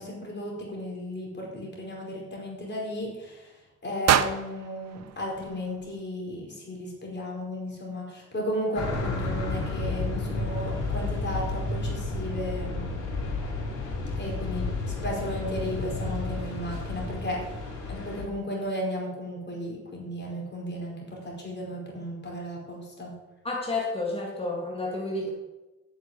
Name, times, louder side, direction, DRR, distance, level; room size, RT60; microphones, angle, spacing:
voice 1, 0.0-3.5 3.8-12.8 14.2-17.6 17.9-23.1, equal, 35° left, -1 dB, 5.0 m, -34 dB
sound 1, 4.1-6.2, right 10 dB, 60° right, 0.8 m, -28 dB
sound 2, 8.7-18.2, left 3 dB, 85° left, 4.0 m, -31 dB
voice 2, 23.4-25.3, left 2 dB, 20° left, -2 dB, 2.9 m, -30 dB
9.7 x 7.3 x 7.9 m, 1.0 s
cardioid pair, 90°, 30 cm